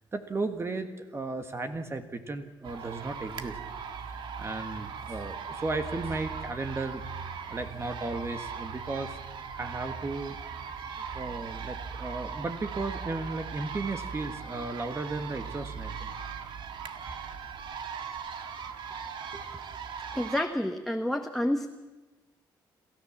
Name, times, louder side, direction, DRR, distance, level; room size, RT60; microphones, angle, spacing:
voice 1, 0.0-3.6 4.1-7.0 7.5-9.2 9.5-10.4 10.9-16.1 19.3-19.4, right 3 dB, 30° right, 7 dB, 1.6 m, -35 dB
sound 1, 2.6-20.4, right 6 dB, 75° right, 1.6 m, -39 dB
voice 2, 20.1-21.7, left 1 dB, 5° left, 3 dB, 1.3 m, -29 dB
27.0 x 14.0 x 7.3 m, 1.1 s
cardioid pair, 90°, 8 cm